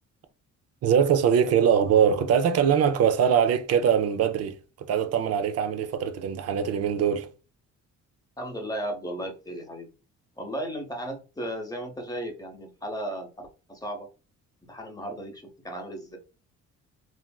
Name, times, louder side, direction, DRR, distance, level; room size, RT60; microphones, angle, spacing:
voice 1, 0.8-7.3, right 8 dB, 55° right, 0.5 m, -22 dB
voice 2, 8.4-9.9 10.4-14.1 14.7-16.2, right 1 dB, 10° left, 0.9 m, -35 dB
3.3 x 2.6 x 2.2 m
cardioid pair, 90°, 30 cm